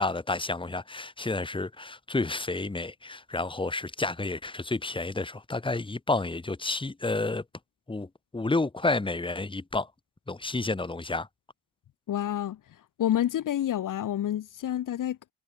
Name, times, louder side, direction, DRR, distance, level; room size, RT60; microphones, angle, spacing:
voice 1, 0.0-7.4 7.9-9.9 10.3-11.3, left 3 dB, 15° left, 3.0 m, -30 dB
voice 2, 12.1-12.6 13.0-15.3, left 11 dB, 80° left, 2.1 m, -28 dB
wide cardioid pair, 135°, 31 cm